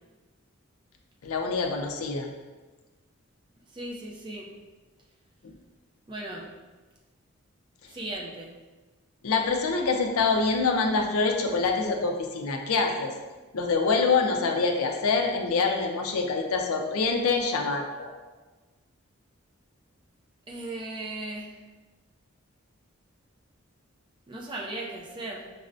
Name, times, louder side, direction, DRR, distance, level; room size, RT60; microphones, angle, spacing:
voice 1, 1.2-2.3 5.4-5.5 9.2-13.1 13.5-18.1, left 4 dB, 80° left, 3 dB, 0.5 m, -25 dB
voice 2, 3.7-4.5 6.1-6.5 7.9-8.6 20.5-21.5 24.3-25.5, right 2 dB, 20° right, -2 dB, 0.4 m, -37 dB
6.0 x 2.1 x 2.6 m, 1.3 s
head